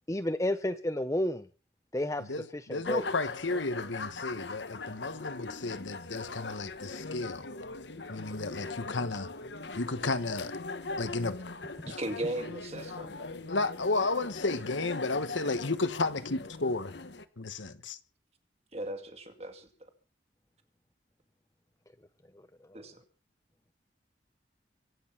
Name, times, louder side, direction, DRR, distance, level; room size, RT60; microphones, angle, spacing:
voice 1, 0.1-1.5 1.9-3.1, left 1 dB, 15° left, 0.6 m, -31 dB
voice 2, 2.2-7.5 8.1-9.3 9.7-10.6 11.0-11.4 13.5-16.9 17.4-18.0, left 3 dB, 85° left, 1.4 m, -33 dB
sound 1, 2.8-17.2, left 3 dB, 70° left, 1.2 m, -41 dB
voice 3, 11.9-13.1 18.7-19.9 22.7-23.0, right 1 dB, 35° right, 2.3 m, -37 dB
24.0 x 8.7 x 5.9 m
head